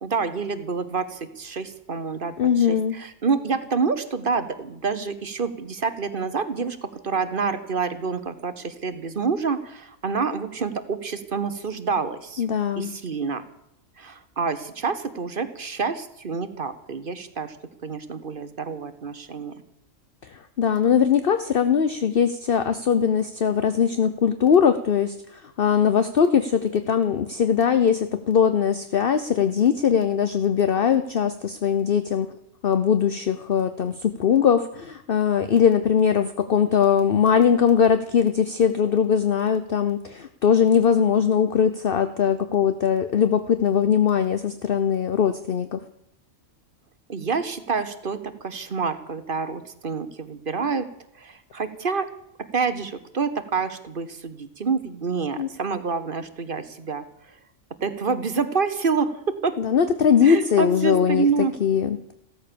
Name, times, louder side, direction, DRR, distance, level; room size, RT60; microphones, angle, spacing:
voice 1, 0.0-12.4 12.8-13.4 14.0-17.6 17.8-19.5 47.1-50.9 51.2-52.1 52.4-57.0 57.8-59.6 60.2-61.5, right 5 dB, 45° right, 11 dB, 1.3 m, -27 dB
voice 2, 2.4-3.0 12.4-12.9 20.2-32.3 32.6-45.8 55.4-55.5 59.6-61.3 61.6-62.0, left 7 dB, 50° left, 10 dB, 1.0 m, -21 dB
15.5 x 13.5 x 6.9 m, 0.76 s
omnidirectional pair, 1.3 m